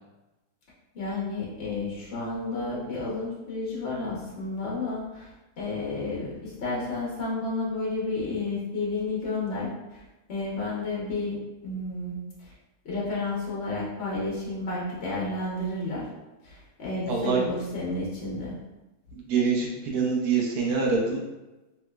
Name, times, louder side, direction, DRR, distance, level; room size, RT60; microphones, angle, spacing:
voice 1, 0.9-5.3 5.6-10.0 10.3-12.5 12.8-16.1 16.4-18.6, left 2 dB, 50° left, -5 dB, 0.9 m, -31 dB
voice 2, 17.1-17.4 19.1-21.2, right 5 dB, 75° right, -2 dB, 1.3 m, -25 dB
3.4 x 3.0 x 2.3 m, 1.1 s
omnidirectional pair, 1.7 m